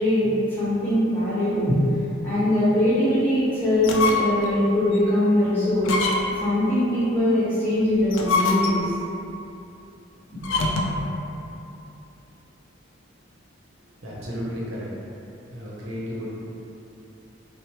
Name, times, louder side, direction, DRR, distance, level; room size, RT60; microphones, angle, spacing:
voice 1, 0.0-1.8 2.2-6.0 6.4-8.9, left 1 dB, 10° left, -13 dB, 1.1 m, -21 dB
sound 1, 3.7-4.5 4.9-5.0 5.8-6.5 8.0-9.0 10.4-11.1, left 3 dB, 85° left, 0.3 m, -24 dB
voice 2, 14.0-14.9 15.5-16.3, equal, 90° right, -6 dB, 0.7 m, -33 dB
3.0 x 2.0 x 2.8 m, 2.8 s
head